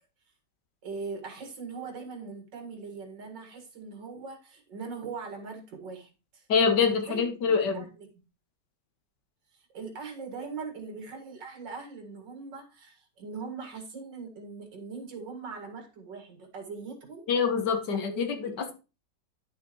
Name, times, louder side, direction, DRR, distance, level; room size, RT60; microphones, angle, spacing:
voice 1, 0.8-6.5 7.1-8.1 9.5-17.3 17.9-18.4 18.6-18.7, right 4 dB, 85° right, 4 dB, 2.5 m, -41 dB
voice 2, 6.5-7.9 17.3-18.7, left 5 dB, 75° left, 7 dB, 1.7 m, -25 dB
10.5 x 6.7 x 3.0 m, 0.31 s
omnidirectional pair, 1.9 m